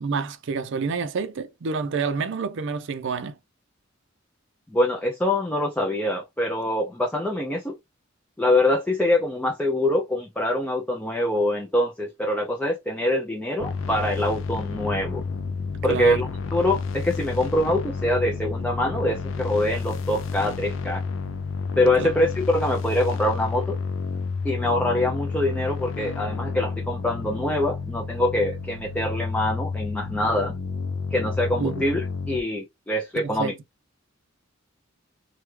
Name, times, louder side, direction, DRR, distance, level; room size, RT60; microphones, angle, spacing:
voice 1, 0.0-3.4 15.9-16.2 22.0-22.1 31.6-31.8 33.1-33.5, right 5 dB, 65° right, 0.5 m, -28 dB
voice 2, 4.7-7.8 8.4-15.2 15.8-21.0 21.8-23.8 24.4-30.5 31.1-33.5, left 1 dB, 5° left, 0.4 m, -24 dB
sound 1, 13.6-32.4, left 4 dB, 65° left, 0.4 m, -30 dB
3.4 x 2.2 x 3.1 m
head